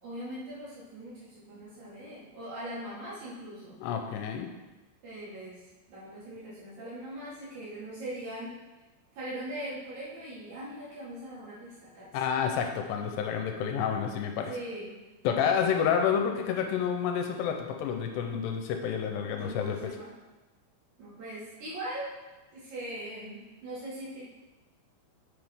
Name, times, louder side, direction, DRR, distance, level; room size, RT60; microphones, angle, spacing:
voice 1, 0.0-3.8 5.0-5.6 5.9-8.5 9.1-12.1 14.5-14.9 15.4-15.9 19.3-20.1 21.0-22.1 22.5-24.3, right 1 dB, 50° right, -8 dB, 3.3 m, -41 dB
voice 2, 3.8-4.5 12.1-14.5 15.2-19.9, left 7 dB, 90° left, 4 dB, 2.8 m, -29 dB
8.1 x 6.8 x 3.7 m, 1.1 s
omnidirectional pair, 4.9 m